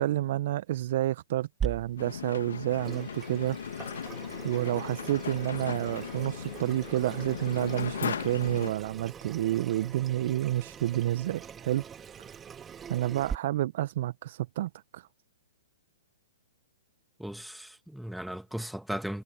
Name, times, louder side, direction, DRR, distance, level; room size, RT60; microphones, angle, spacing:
voice 1, 0.0-3.6 4.4-11.8 12.9-15.0, right 14 dB, 50° right, 0.9 m, -29 dB
Water tap faucet / Sink (filling or washing), 1.6-13.4, right 7 dB, 15° right, 3.4 m, -42 dB
sound 1, 2.0-8.7, left 7 dB, 70° left, 2.1 m, -37 dB
voice 2, 17.2-19.2, equal, ahead, 2.2 m, -37 dB
figure-of-eight pair, 120°, 0 cm